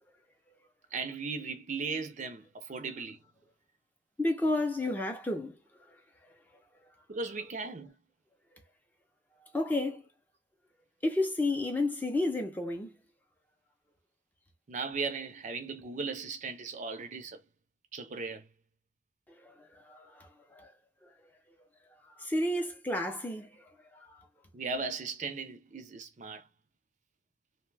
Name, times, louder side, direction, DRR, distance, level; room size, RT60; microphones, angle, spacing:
voice 1, 0.9-3.2 7.1-7.9 14.7-17.4 17.9-18.5 24.5-26.5, right 4 dB, 40° right, 0.5 m, -37 dB
voice 2, 4.2-5.6 6.2-6.3 9.5-10.1 11.0-13.0 19.4-20.7 21.0-21.1 22.1-24.2, left 2 dB, 10° left, 0.5 m, -32 dB
2.7 x 2.1 x 3.2 m
head